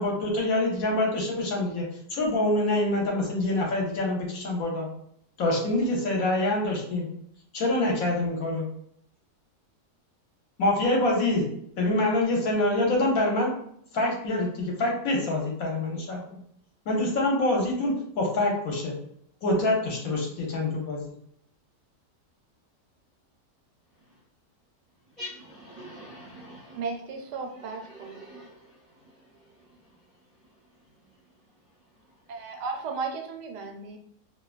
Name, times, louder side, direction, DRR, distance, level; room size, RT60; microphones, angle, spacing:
voice 1, 0.0-4.9 5.4-7.1 7.5-8.7 10.6-11.5 11.8-13.5 13.9-16.4 16.9-19.0 19.4-21.1, left 1 dB, 65° left, -1 dB, 1.0 m, -26 dB
voice 2, 25.2-26.8 27.9-28.8, equal, 35° right, -9 dB, 0.5 m, -43 dB
voice 3, 26.7-28.2 32.3-34.0, right 4 dB, 90° right, 3 dB, 1.2 m, -35 dB
2.6 x 2.2 x 2.3 m, 0.70 s
omnidirectional pair, 1.7 m